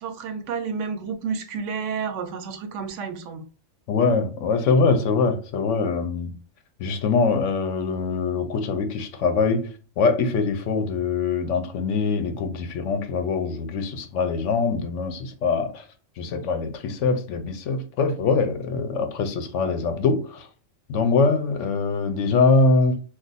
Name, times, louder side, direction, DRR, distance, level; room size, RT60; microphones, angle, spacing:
voice 1, 0.0-3.4, right 5 dB, 70° right, 0.8 m, -30 dB
voice 2, 3.9-6.3 6.8-9.7 10.0-15.8 16.2-20.5 20.9-23.0, left 4 dB, 70° left, 0.9 m, -23 dB
2.5 x 2.3 x 3.9 m
omnidirectional pair, 1.4 m